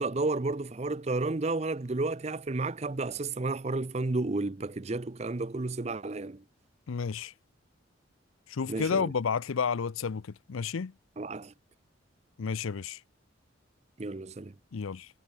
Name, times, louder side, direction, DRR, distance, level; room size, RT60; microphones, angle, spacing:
voice 1, 0.0-6.4 8.7-9.1 11.2-11.5 14.0-14.5, right 3 dB, 30° right, 0.6 m, -32 dB
voice 2, 6.9-7.3 8.5-10.2 10.5-10.9 12.4-13.0 14.7-15.1, left 6 dB, 90° left, 0.5 m, -31 dB
head